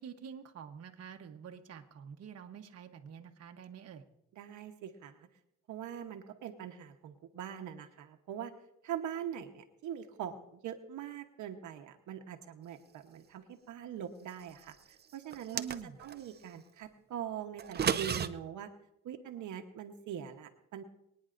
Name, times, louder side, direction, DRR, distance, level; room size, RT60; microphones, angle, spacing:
voice 1, 0.0-4.0 15.5-16.0, right 8 dB, 55° right, 4 dB, 1.1 m, -47 dB
voice 2, 4.3-5.3 5.7-8.5 8.8-14.8 15.1-15.6 16.0-18.7 19.0-20.8, right 9 dB, 80° right, 4 dB, 1.1 m, -42 dB
sound 1, 15.3-16.2 17.6-18.3, right 7 dB, 35° right, 0.6 m, -32 dB
23.5 x 9.6 x 2.6 m, 0.81 s
cardioid pair, 90°, 30 cm